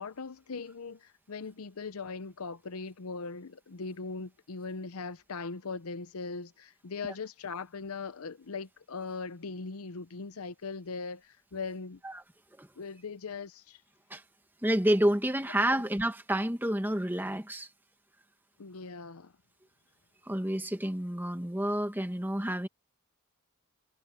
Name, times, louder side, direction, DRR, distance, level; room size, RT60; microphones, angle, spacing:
voice 1, 0.0-12.0 12.8-13.8 15.7-15.8 18.6-19.3, left 4 dB, 75° left, 0.7 m, -40 dB
voice 2, 14.6-17.7 20.2-22.7, right 1 dB, 10° right, 1.5 m, -29 dB
head